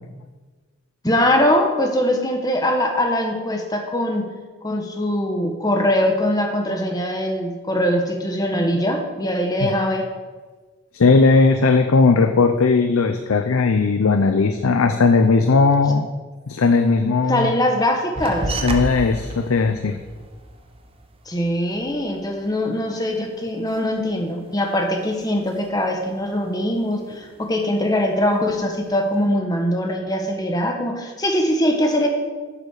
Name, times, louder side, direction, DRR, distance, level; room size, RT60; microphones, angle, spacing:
voice 1, 1.0-4.2 4.6-10.1 17.0-18.6 21.3-32.1, left 1 dB, 20° left, 2 dB, 1.3 m, -22 dB
voice 2, 10.9-16.1 16.5-17.5 18.6-20.0, left 4 dB, 90° left, 7 dB, 0.6 m, -17 dB
sound 1, 18.2-23.1 23.4-24.8 25.1-25.9 26.2-27.6 28.0-28.7, right 1 dB, 25° right, 0.8 m, -32 dB
8.3 x 7.5 x 6.5 m, 1.4 s
head